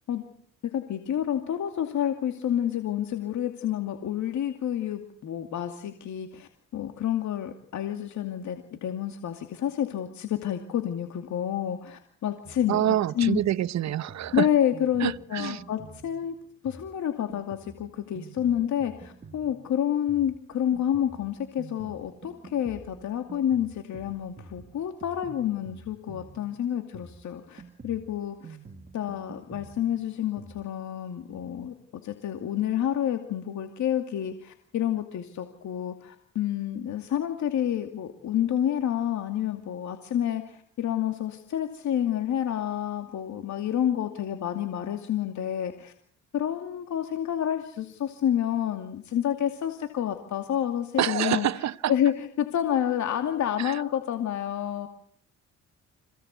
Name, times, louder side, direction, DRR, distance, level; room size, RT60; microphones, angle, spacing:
voice 1, 0.6-13.4 14.3-16.4 16.6-28.6 28.9-31.7 32.0-45.9 46.3-51.5 51.9-54.9, left 10 dB, 70° left, 2.5 m, -29 dB
Drum kit, 12.4-30.6, right 4 dB, 30° right, 1.9 m, -49 dB
voice 2, 12.7-14.5 15.0-15.6 51.0-51.9 53.6-53.8, right 11 dB, 65° right, 1.0 m, -27 dB
27.0 x 17.5 x 8.3 m
cardioid pair, 90°, 30 cm